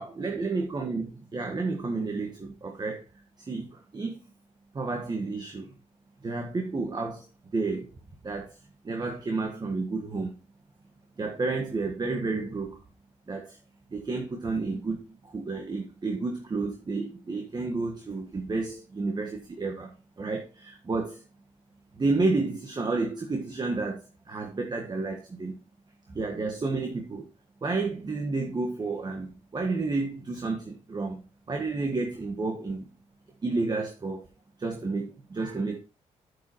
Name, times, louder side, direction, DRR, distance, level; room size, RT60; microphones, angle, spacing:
voice 1, 0.0-3.0 3.4-4.2 4.7-5.6 6.2-7.2 7.5-7.9 8.2-8.5 8.8-10.3 11.2-12.8 13.3-13.6 13.9-21.2 21.9-25.5 26.1-27.2 27.6-31.2 31.5-32.9 33.4-34.3 34.6-35.8, right 3 dB, 35° right, 1.6 m, -31 dB
9.2 x 8.1 x 3.0 m
cardioid pair, 75°, 13 cm